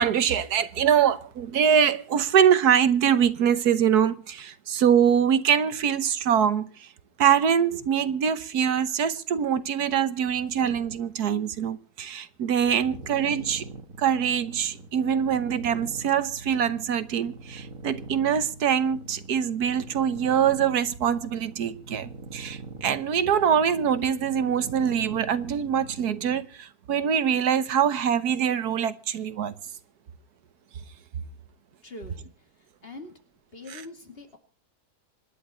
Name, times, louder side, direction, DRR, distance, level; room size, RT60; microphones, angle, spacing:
voice 1, 0.0-6.9 7.2-13.7 14.0-29.5 33.7-33.8, right 8 dB, 70° right, 1.6 m, -24 dB
sound 1, 12.6-26.5, right 3 dB, 55° right, 2.1 m, -43 dB
voice 2, 12.7-13.1 31.8-32.3 32.8-33.1 33.5-34.4, left 2 dB, 35° left, 2.6 m, -43 dB
26.0 x 10.5 x 4.3 m
omnidirectional pair, 1.7 m